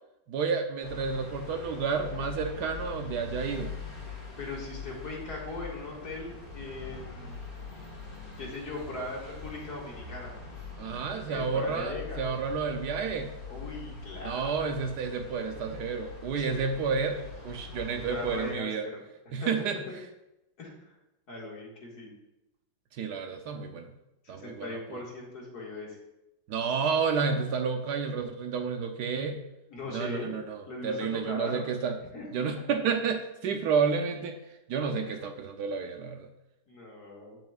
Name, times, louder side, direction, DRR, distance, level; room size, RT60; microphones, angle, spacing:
voice 1, 0.3-3.7 10.8-13.4 14.2-18.9 19.3-19.8 22.9-23.9 24.3-25.0 26.5-29.4 29.9-32.0 32.3-34.4 34.7-36.3, right 5 dB, 70° right, 5 dB, 1.1 m, -30 dB
sound 1, 0.8-18.5, left 4 dB, 30° left, 1.5 m, -43 dB
voice 2, 4.4-7.4 8.4-10.3 11.3-12.2 13.5-14.6 16.4-16.6 17.9-19.0 19.4-19.5 19.9-20.0 20.6-20.9 21.3-22.1 24.3-26.0 29.7-30.4 30.7-31.6 32.1-32.2 35.0-35.2 36.7-37.4, left 2 dB, 60° left, -3 dB, 2.4 m, -39 dB
9.3 x 7.7 x 2.4 m, 0.92 s
omnidirectional pair, 2.0 m